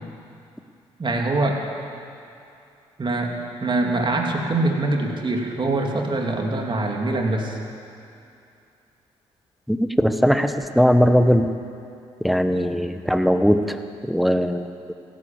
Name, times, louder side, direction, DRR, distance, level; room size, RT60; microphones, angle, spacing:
voice 1, 1.0-1.6 3.0-7.6, right 2 dB, 35° right, 1 dB, 2.9 m, -24 dB
voice 2, 9.7-11.5 12.2-13.8 14.1-14.9, equal, ahead, 9 dB, 1.1 m, -19 dB
16.0 x 12.0 x 7.3 m, 2.6 s
hypercardioid pair, 50°, 14 cm